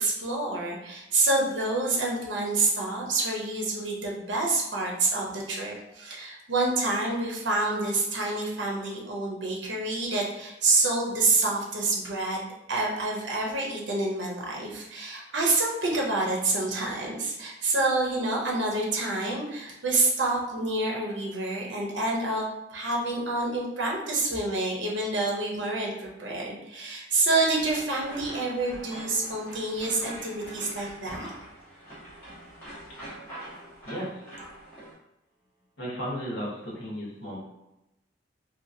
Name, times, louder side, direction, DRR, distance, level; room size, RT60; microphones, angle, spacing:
voice 1, 0.0-22.4 22.7-31.3, right 2 dB, 75° right, -2 dB, 0.6 m, -27 dB
sound 1, 27.4-34.9, right 1 dB, 10° left, 1.1 m, -44 dB
voice 2, 33.8-34.3 35.8-37.4, equal, 90° left, -5 dB, 0.9 m, -34 dB
2.8 x 2.2 x 2.5 m, 0.92 s
head